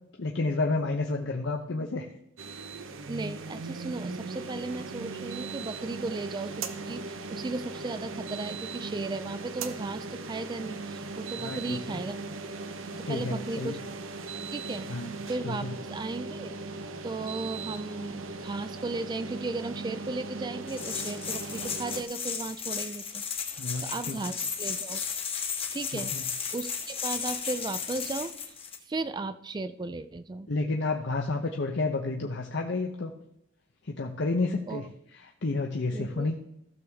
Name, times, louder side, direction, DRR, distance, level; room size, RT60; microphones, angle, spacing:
voice 1, 0.2-2.1 11.4-12.0 13.1-13.8 14.9-15.1 15.4-15.8 23.6-24.2 25.9-26.2 30.5-33.1 33.8-36.3, left 3 dB, 60° left, 2 dB, 0.8 m, -30 dB
sound 1, 2.4-22.0, right 3 dB, 80° right, 0.9 m, -38 dB
voice 2, 3.1-12.2 13.0-13.8 14.5-14.9 15.3-16.6 17.0-23.2 23.8-25.0 25.7-26.1 26.5-28.4 28.9-30.5 34.7-34.8 35.9-36.3, right 3 dB, 20° right, 13 dB, 0.3 m, -35 dB
sound 2, 20.7-28.8, left 6 dB, 30° left, 1.4 m, -34 dB
15.5 x 6.9 x 3.5 m, 0.79 s
head